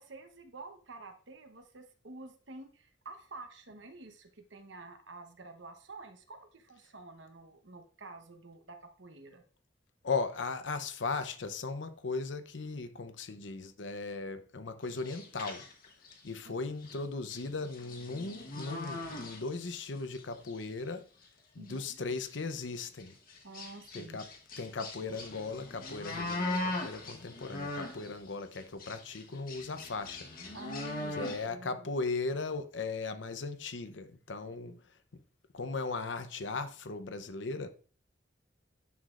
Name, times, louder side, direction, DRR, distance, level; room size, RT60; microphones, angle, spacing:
voice 1, 0.0-9.4 16.4-16.5 21.6-22.0 23.4-24.2 30.5-31.9 34.6-34.8, right 3 dB, 80° right, 1.0 m, -49 dB
voice 2, 10.0-15.6 16.2-21.1 21.5-23.2 23.9-24.3 24.6-30.3 31.1-34.8 35.5-37.7, left 3 dB, 75° left, 0.7 m, -37 dB
sound 1, 14.9-16.3 16.8-17.0 17.3-19.9 20.1-20.6 21.2-21.3 21.7-21.8 22.1-22.3 23.0-28.2 28.5-31.5, left 2 dB, 50° left, 1.3 m, -40 dB
9.4 x 5.8 x 2.5 m
head